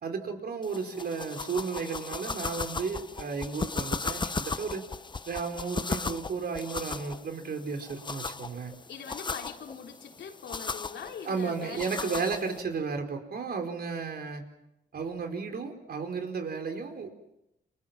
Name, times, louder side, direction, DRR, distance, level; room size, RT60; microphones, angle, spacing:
voice 1, 0.0-4.8 5.2-8.8 11.2-14.4 14.9-17.2, right 5 dB, 60° right, 5 dB, 4.7 m, -33 dB
sound 1, 0.6-12.6, left 4 dB, 25° left, 0.9 m, -37 dB
voice 2, 8.9-12.5, left 7 dB, 90° left, 2 dB, 3.8 m, -42 dB
29.5 x 27.0 x 6.0 m, 0.84 s
cardioid pair, 110°, 18 cm